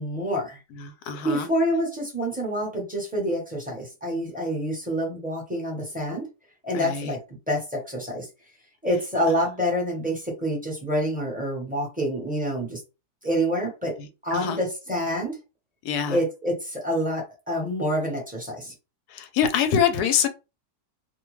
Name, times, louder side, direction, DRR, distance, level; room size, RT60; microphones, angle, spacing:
voice 1, 0.0-0.6 1.2-6.3 6.6-7.2 7.5-8.3 8.8-12.8 13.2-14.0 14.2-15.4 16.1-18.7, equal, 5° right, 0.9 m, -27 dB
voice 2, 0.8-1.5 6.7-7.1 14.0-14.6 15.8-16.2 19.1-20.3, left 8 dB, 85° left, 1.1 m, -25 dB
2.6 x 2.2 x 3.1 m
omnidirectional pair, 1.6 m